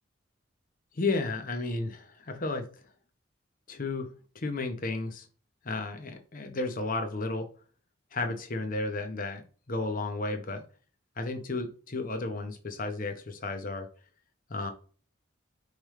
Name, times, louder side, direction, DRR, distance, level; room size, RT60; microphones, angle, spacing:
voice 1, 0.9-2.7 3.7-5.3 5.6-7.5 8.1-10.6 11.2-13.9 14.5-14.7, left 3 dB, 45° left, 6 dB, 0.8 m, -33 dB
5.2 x 3.3 x 3.1 m, 0.39 s
head